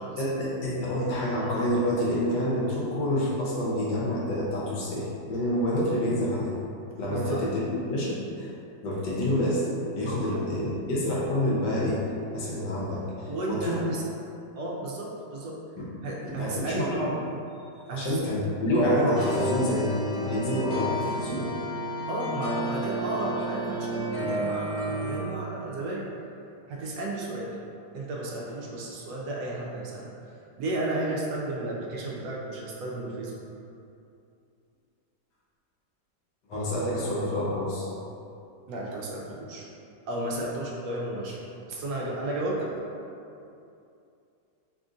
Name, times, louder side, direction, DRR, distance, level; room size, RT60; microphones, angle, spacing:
voice 1, 0.2-6.6 7.0-8.5 8.8-9.6 9.9-12.0 12.3-13.9 15.8-15.9 16.2-17.1 17.9-21.5 31.0-31.1 36.5-37.9, left 1 dB, 80° left, -6 dB, 1.5 m, -28 dB
voice 2, 7.1-7.4 10.2-10.4 13.3-14.0 14.6-15.6 16.0-17.0 17.9-18.2 22.1-26.1 26.7-27.6 27.9-30.1 30.6-33.4 38.7-39.7 40.1-41.4 41.7-42.7, right 2 dB, 75° right, -3 dB, 1.1 m, -33 dB
sound 1, 19.1-25.2, right 1 dB, 30° left, 1.2 m, -31 dB
3.4 x 2.4 x 3.7 m, 2.6 s
omnidirectional pair, 1.9 m